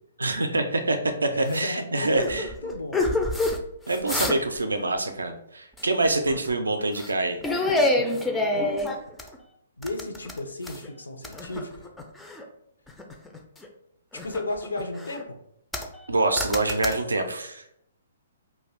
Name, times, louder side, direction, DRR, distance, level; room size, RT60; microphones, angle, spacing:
voice 1, 0.2-2.5 3.9-7.4 16.1-17.6, right 2 dB, 75° right, 7 dB, 0.3 m, -25 dB
voice 2, 1.3-3.2 8.5-8.8 9.8-11.9 14.1-15.4, left 2 dB, 70° left, 4 dB, 0.5 m, -34 dB
sound 1, 1.5-1.7 2.2-3.6 3.9-4.6 4.9-5.1 5.8-6.5 7.0-7.1 7.4-9.4 9.8-10.9 11.2-12.4 12.9-13.7 14.1-15.2 15.7-16.1 16.4-16.9, left 2 dB, 5° left, 0.3 m, -27 dB
2.4 x 2.2 x 3.3 m, 0.76 s
figure-of-eight pair, 120°, 0 cm